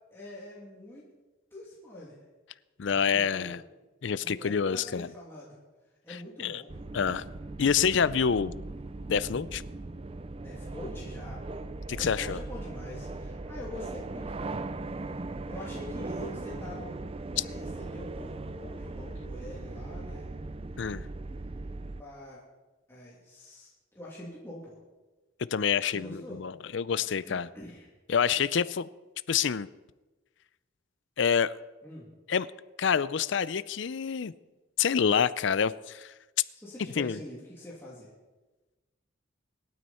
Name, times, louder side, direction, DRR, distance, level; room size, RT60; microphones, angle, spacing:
voice 1, 0.1-1.0 1.5-2.2 2.8-3.6 4.2-5.6 6.0-6.9 10.4-11.7 11.9-14.6 15.0-15.1 15.5-17.0 17.4-20.3 21.9-22.4 22.9-23.7 23.9-24.8 25.8-26.4 27.0-27.9 31.8-32.1 36.5-38.1, left 1 dB, 10° left, -7 dB, 2.7 m, -45 dB
voice 2, 2.8-3.6 4.0-5.1 6.4-6.6 6.9-7.2 7.6-8.5 9.1-9.6 11.9-12.4 17.4-17.5 20.8-21.1 25.5-27.5 28.1-28.9 29.3-29.7 31.2-31.5 32.3-32.5 32.8-34.3 34.8-36.1 37.0-37.2, left 7 dB, 60° left, 16 dB, 0.5 m, -27 dB
sound 1, 6.7-22.0, right 2 dB, 30° right, 0.4 m, -39 dB
25.5 x 9.4 x 4.3 m, 1.2 s
head